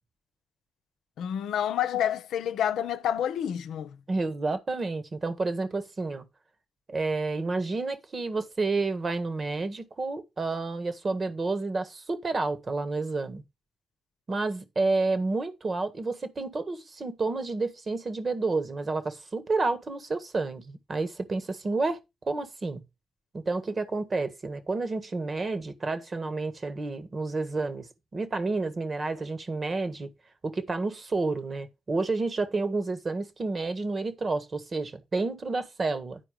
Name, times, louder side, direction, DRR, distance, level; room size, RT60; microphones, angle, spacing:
voice 1, 1.2-4.0, left 10 dB, 80° left, 0.6 m, -28 dB
voice 2, 4.1-6.2 6.9-13.4 14.3-22.8 23.3-30.1 30.4-36.2, right 3 dB, 45° right, 1.5 m, -30 dB
9.9 x 4.7 x 5.0 m
hypercardioid pair, 40°, 0 cm